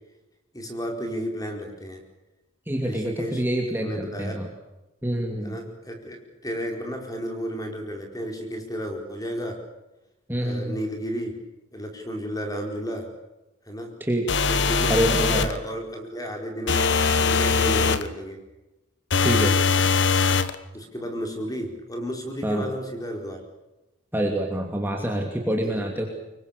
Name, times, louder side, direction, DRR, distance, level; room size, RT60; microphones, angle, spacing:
voice 1, 0.5-2.0 2.8-3.4 3.8-4.5 5.4-9.6 10.4-11.4 11.7-13.1 13.7-14.0 14.5-18.4 20.7-23.4 25.6-25.9, equal, 15° left, 3 dB, 4.7 m, -33 dB
voice 2, 2.7-4.5 5.0-5.6 10.3-10.8 14.1-14.2 14.9-15.5 19.2-19.5 22.4-22.7 24.1-26.1, right 1 dB, 10° right, 1 dB, 2.8 m, -26 dB
sound 1, 14.3-15.6 16.7-18.1 19.1-20.5, left 5 dB, 55° left, 1.3 m, -21 dB
25.5 x 23.5 x 6.8 m, 0.99 s
head